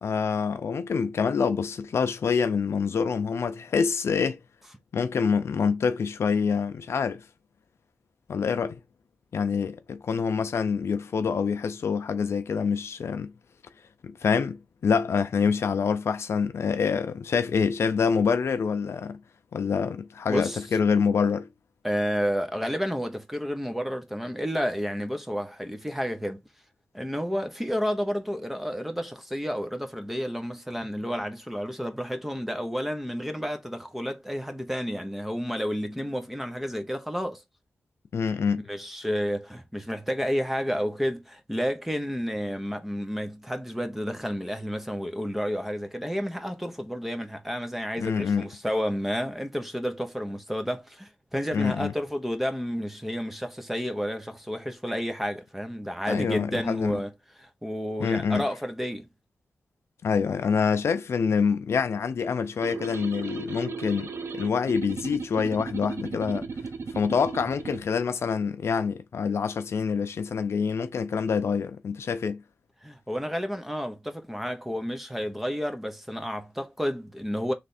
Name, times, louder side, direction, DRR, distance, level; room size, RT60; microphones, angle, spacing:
voice 1, 0.0-4.4 4.9-7.2 8.3-8.8 9.3-13.3 14.0-19.2 19.5-21.5 38.1-38.6 48.0-48.5 51.5-51.9 56.1-57.0 58.0-58.4 60.0-66.5 66.9-72.4, left 6 dB, 85° left, 0.6 m, -26 dB
voice 2, 20.3-20.6 21.8-26.4 26.9-37.4 38.7-57.1 57.4-59.1 72.8-77.5, equal, 5° right, 0.9 m, -31 dB
sound 1, 62.6-67.8, right 4 dB, 75° right, 0.6 m, -36 dB
3.4 x 3.3 x 4.2 m
wide cardioid pair, 80°, 4 cm